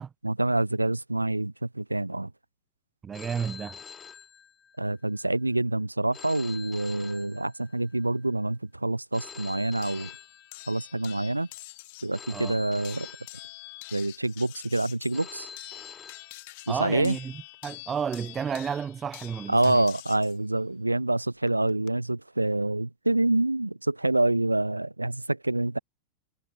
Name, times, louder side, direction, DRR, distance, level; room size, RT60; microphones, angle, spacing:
voice 1, 0.2-2.3 4.8-10.1 10.7-11.5 12.0-13.1 13.9-15.5 16.7-17.2 19.5-25.8, right 2 dB, 85° right, 0.4 m, -27 dB
voice 2, 3.0-3.8 12.3-12.6 16.7-19.8, right 7 dB, 20° right, 0.6 m, -32 dB
Telephone, 3.1-5.0 6.1-8.0 9.1-11.0 12.1-14.0 15.1-17.0, left 7 dB, 20° left, 5.6 m, -46 dB
sound 1, 9.8-12.2 12.8-20.4 21.5-21.9, left 23 dB, 50° left, 3.7 m, -46 dB
figure-of-eight pair, 90°, 0 cm